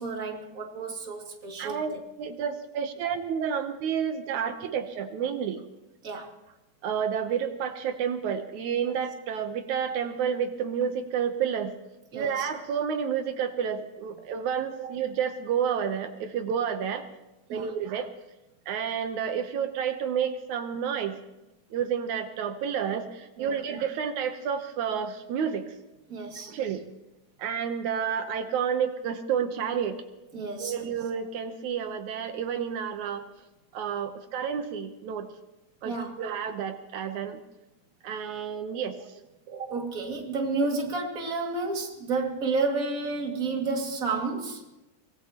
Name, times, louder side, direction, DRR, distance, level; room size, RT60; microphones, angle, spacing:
voice 1, 0.0-1.8 6.0-6.3 12.1-12.5 17.5-17.7 23.4-23.6 26.1-26.5 30.3-30.9 35.8-36.1 39.5-44.6, right 3 dB, 30° right, 1 dB, 2.5 m, -31 dB
voice 2, 1.6-5.6 6.8-11.7 12.1-17.0 17.5-18.1 18.7-21.2 21.7-25.7 26.5-26.9 27.4-30.0 30.6-33.2 33.7-35.3 35.8-37.4 38.0-39.1 39.5-39.6, right 7 dB, 80° right, 7 dB, 2.4 m, -30 dB
24.5 x 19.0 x 3.0 m, 0.99 s
omnidirectional pair, 3.4 m